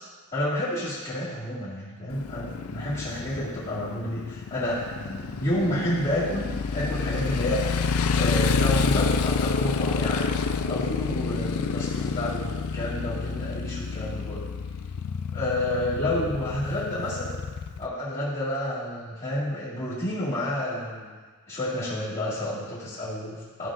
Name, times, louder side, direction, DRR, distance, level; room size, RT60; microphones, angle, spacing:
voice 1, 0.3-7.6 8.1-10.3 10.7-14.4 15.3-17.3 17.8-21.1 21.5-23.7, left 1 dB, 30° left, -13 dB, 1.9 m, -30 dB
Motorcycle, 2.1-17.9, left 5 dB, 75° left, 0.4 m, -28 dB
13.0 x 5.6 x 2.5 m, 1.4 s
head